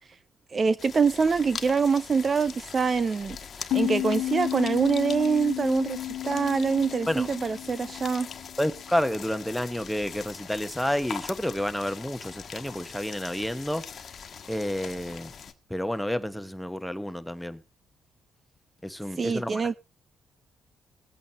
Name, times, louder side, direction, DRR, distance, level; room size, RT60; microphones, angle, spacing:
voice 1, 0.5-3.4 3.7-8.3 19.2-19.7, right 5 dB, 40° right, 0.5 m, -25 dB
sound 1, 0.8-15.5, left 7 dB, 50° left, 1.4 m, -42 dB
sound 2, 3.7-9.0, left 13 dB, 75° left, 1.5 m, -32 dB
voice 2, 8.6-13.8 14.5-15.3 15.7-17.6 18.8-19.7, left 1 dB, 5° left, 1.2 m, -30 dB
22.0 x 8.5 x 2.9 m
cardioid pair, 90°, 0 cm